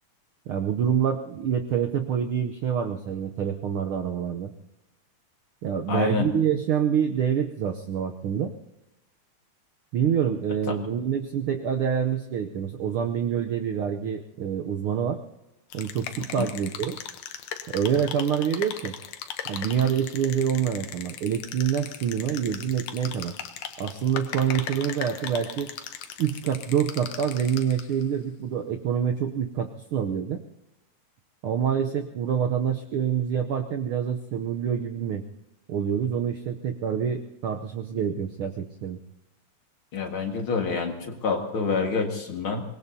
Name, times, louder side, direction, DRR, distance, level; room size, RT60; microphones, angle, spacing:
voice 1, 0.5-4.5 5.6-8.5 9.9-15.2 15.7-17.0 17.7-18.9 19.5-23.3 23.8-25.7 26.2-30.4 31.4-35.2 35.7-39.0, right 8 dB, 90° right, 5 dB, 1.1 m, -26 dB
voice 2, 5.9-6.3 10.7-10.8 16.4-16.5 39.9-42.6, left 5 dB, 50° left, 3 dB, 2.3 m, -27 dB
sound 1, 15.7-28.0, left 9 dB, 70° left, 2.1 m, -38 dB
24.0 x 21.0 x 2.8 m, 0.93 s
omnidirectional pair, 3.5 m